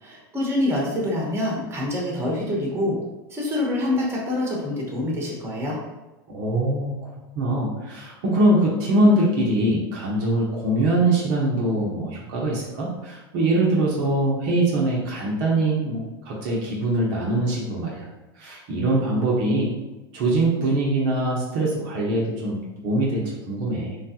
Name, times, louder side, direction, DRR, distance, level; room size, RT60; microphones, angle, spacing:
voice 1, 0.0-3.0 3.3-5.8, left 1 dB, 20° right, -3 dB, 1.0 m, -26 dB
voice 2, 6.3-6.9 7.4-18.1 18.4-19.7 20.1-24.0, right 1 dB, 60° right, -4 dB, 0.8 m, -23 dB
3.3 x 2.3 x 2.8 m, 1.1 s
hypercardioid pair, 95°, 12 cm